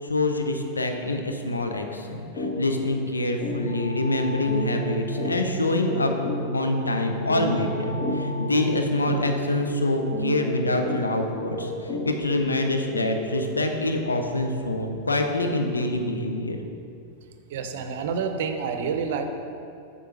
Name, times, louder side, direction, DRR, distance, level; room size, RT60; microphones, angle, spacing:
voice 1, 0.0-6.1 6.5-16.6, left 2 dB, 80° left, 4 dB, 0.6 m, -26 dB
sound 1, 2.4-2.5 2.9-3.0 3.4-13.6, equal, 40° left, 1.4 m, -33 dB
sound 2, 3.5-10.9, equal, 35° right, 1.0 m, -32 dB
voice 2, 17.5-19.2, right 6 dB, 55° right, 7 dB, 0.6 m, -28 dB
8.1 x 3.8 x 6.0 m, 2.5 s
figure-of-eight pair, 90°, 0 cm